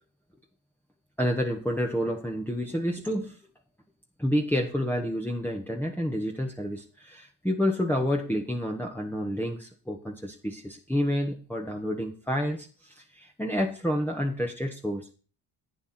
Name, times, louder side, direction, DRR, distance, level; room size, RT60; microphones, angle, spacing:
voice 1, 1.2-3.4 4.2-15.1, equal, 5° left, 0 dB, 1.6 m, -29 dB
11.5 x 8.6 x 4.4 m, 0.38 s
cardioid pair, 75°, 45 cm